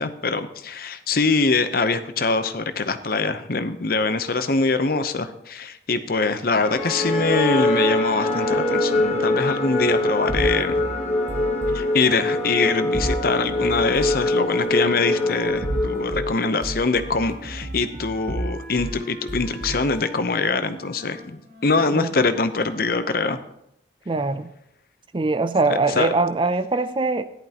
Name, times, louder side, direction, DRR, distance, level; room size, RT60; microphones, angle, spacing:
voice 1, 0.0-10.7 11.7-23.4 25.9-26.1, left 3 dB, 50° left, 10 dB, 0.7 m, -23 dB
sound 1, 6.5-16.7, left 1 dB, 35° left, 1.2 m, -24 dB
sound 2, 10.3-11.8 12.9-14.3 15.4-16.3 16.6-19.0 19.3-19.9, right 1 dB, 40° right, 1.3 m, -31 dB
Wind instrument woodwind instrument, 14.8-23.1, left 1 dB, 60° right, 5.3 m, -43 dB
voice 2, 24.1-24.5 25.1-27.2, right 3 dB, 25° right, 12 dB, 0.4 m, -22 dB
14.0 x 11.0 x 2.9 m, 0.76 s
head